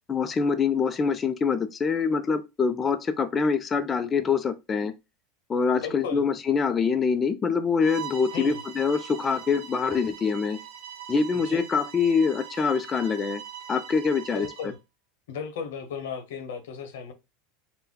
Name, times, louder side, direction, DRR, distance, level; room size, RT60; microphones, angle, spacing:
voice 1, 0.1-4.9 5.5-10.6 11.1-13.4 13.7-14.5, left 5 dB, 20° left, 0.4 m, -25 dB
voice 2, 5.8-6.2 8.3-8.6 11.3-11.6 14.3-14.8 15.3-17.1, left 6 dB, 90° left, 1.0 m, -35 dB
Bowed string instrument, 7.8-14.7, right 10 dB, 85° right, 0.8 m, -42 dB
4.1 x 2.2 x 3.7 m
supercardioid pair, 140°, 0 cm